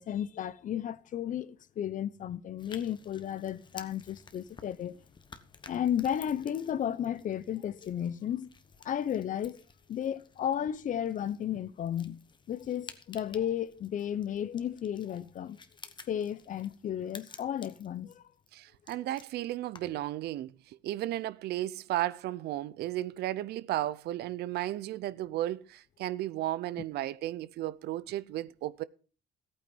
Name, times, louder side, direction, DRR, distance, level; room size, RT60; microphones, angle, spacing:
voice 1, 0.0-5.0 5.7-8.5 8.8-9.6 9.9-12.2 12.5-15.6 16.1-18.2, left 10 dB, 50° left, 0.8 m, -33 dB
sound 1, 2.6-20.1, left 5 dB, 25° left, 1.2 m, -54 dB
voice 2, 18.5-28.8, right 14 dB, 75° right, 0.7 m, -34 dB
14.5 x 9.0 x 5.4 m
cardioid pair, 110°, 17 cm